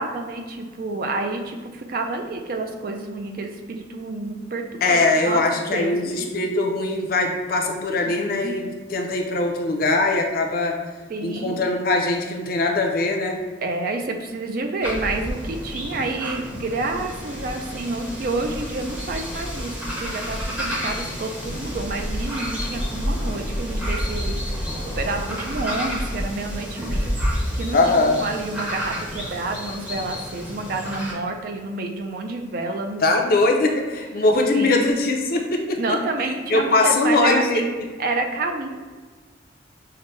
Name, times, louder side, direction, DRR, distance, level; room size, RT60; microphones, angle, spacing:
voice 1, 0.0-5.4 5.7-6.3 8.1-8.6 11.1-11.6 13.6-27.2 27.5-33.0 34.2-34.3 34.5-35.0 35.7-37.7 38.0-38.8, right 2 dB, 50° right, 4 dB, 0.4 m, -29 dB
voice 2, 4.8-10.7 11.2-13.4 27.7-28.2 33.0-35.8 36.5-37.6, left 2 dB, 50° left, 2 dB, 0.5 m, -21 dB
sound 1, 14.8-31.1, equal, 5° right, 0.7 m, -29 dB
5.7 x 2.1 x 3.1 m, 1.4 s
head